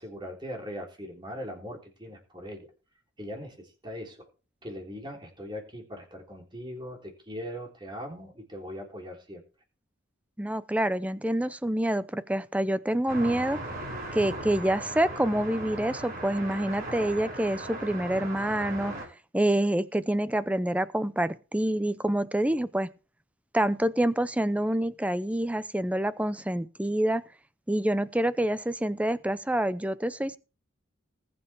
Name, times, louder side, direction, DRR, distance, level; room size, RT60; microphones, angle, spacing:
voice 1, 0.0-2.7 3.2-4.3 4.6-9.4, equal, 25° right, 3.5 m, -40 dB
voice 2, 10.4-13.6 14.1-18.9 19.3-22.9 23.5-27.2 27.7-30.4, right 1 dB, 5° right, 0.6 m, -27 dB
sound 1, 13.1-19.1, right 2 dB, 45° right, 4.9 m, -37 dB
19.5 x 7.8 x 3.5 m
head